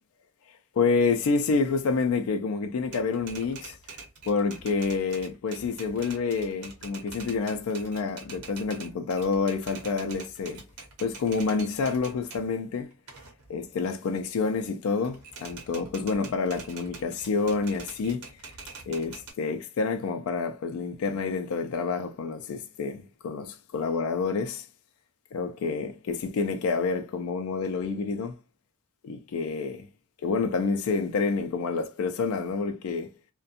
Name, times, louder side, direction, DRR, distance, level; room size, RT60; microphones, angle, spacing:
voice 1, 0.8-3.8 4.3-10.6 11.0-12.9 13.5-18.3 18.9-24.7 25.3-28.4 29.0-29.9 30.2-33.1, left 4 dB, 70° left, 0.4 m, -28 dB
Typewriter, 2.8-12.5 12.9-14.7 15.0-19.3, right 4 dB, 80° right, 0.8 m, -45 dB
2.5 x 2.2 x 2.6 m
head